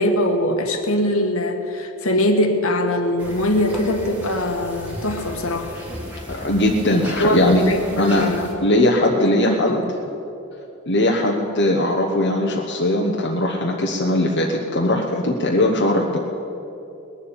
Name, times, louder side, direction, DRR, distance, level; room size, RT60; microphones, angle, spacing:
voice 1, 0.0-5.7 6.9-8.5 9.2-9.9, left 1 dB, 70° left, 5 dB, 1.5 m, -22 dB
sound 1, 3.2-8.5, equal, 5° right, 2.1 m, -35 dB
voice 2, 6.3-7.7 8.0-9.8 10.9-16.2, left 1 dB, 55° left, 0 dB, 1.1 m, -20 dB
20.0 x 7.1 x 8.7 m, 2.8 s
head